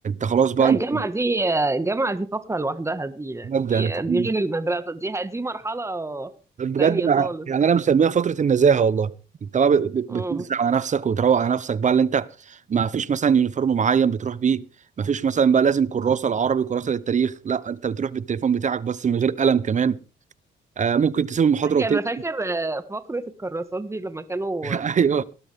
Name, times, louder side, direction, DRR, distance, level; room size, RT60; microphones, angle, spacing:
voice 1, 0.0-0.8 3.5-4.3 6.6-9.1 9.4-14.7 15.0-20.0 20.8-22.0 24.6-25.2, right 7 dB, 40° right, 0.7 m, -21 dB
voice 2, 0.6-6.3 6.8-7.5 10.1-10.4 21.8-24.8, right 2 dB, 15° right, 1.5 m, -27 dB
18.5 x 12.0 x 3.5 m
cardioid pair, 90°, 20 cm